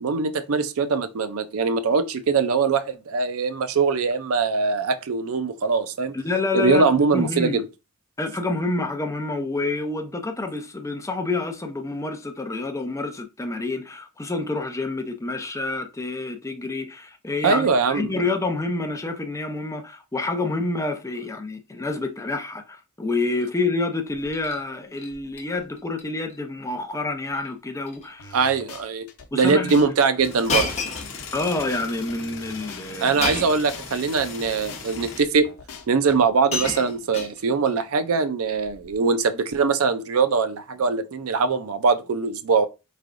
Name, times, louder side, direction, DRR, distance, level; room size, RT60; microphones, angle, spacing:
voice 1, 0.0-6.1 6.5-7.6 17.4-18.1 28.3-29.1 29.3-30.7 33.0-35.5 35.9-42.7, right 5 dB, 70° right, 0.5 m, -22 dB
voice 2, 6.1-7.6 8.2-28.4 29.3-29.8 31.3-33.2, left 3 dB, 15° left, 0.5 m, -28 dB
Shatter, 24.1-24.6 25.0-25.4 25.8-26.0 26.3-26.4 27.3-27.5 27.8-28.1 28.8-28.9 30.5-31.6 33.2-33.7 34.7-34.8 35.8-35.9 36.2-37.7 38.7-38.9, left 3 dB, 30° left, 0.9 m, -30 dB
sound 1, 28.2-29.3 29.7-29.9 30.2-33.3 33.7-33.9 34.2-36.2, left 5 dB, 90° left, 0.7 m, -43 dB
sound 2, 30.2-35.2, left 5 dB, 60° left, 0.8 m, -39 dB
4.6 x 3.2 x 2.5 m
head